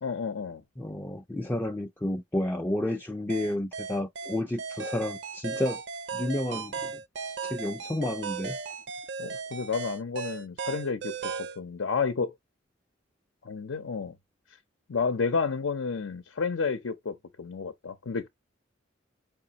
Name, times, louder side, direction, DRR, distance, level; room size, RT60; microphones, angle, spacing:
voice 1, 0.0-0.6 9.2-12.3 13.4-14.2 14.9-18.3, left 5 dB, 85° left, 0.6 m, -31 dB
voice 2, 0.8-5.8 6.1-7.0 7.4-8.6, left 1 dB, 10° left, 0.3 m, -31 dB
sound 1, 3.3-11.6, right 5 dB, 65° right, 0.6 m, -36 dB
4.8 x 2.5 x 2.8 m
head